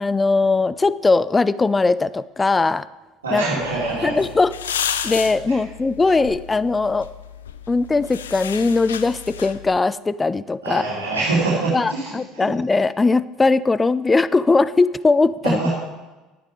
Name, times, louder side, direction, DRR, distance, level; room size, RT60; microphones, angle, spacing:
voice 1, 0.0-2.9 3.3-3.4 4.0-4.8 5.0-7.1 7.7-10.9 11.7-15.6, left 3 dB, 20° left, 17 dB, 0.4 m, -19 dB
voice 2, 3.2-4.2 5.5-5.6 10.6-12.5 15.4-15.7, right 3 dB, 85° right, -5 dB, 2.7 m, -24 dB
sound 1, 3.6-9.8, left 9 dB, 80° left, 0.6 m, -32 dB
12.0 x 9.2 x 5.2 m, 1.2 s
hypercardioid pair, 65°, 0 cm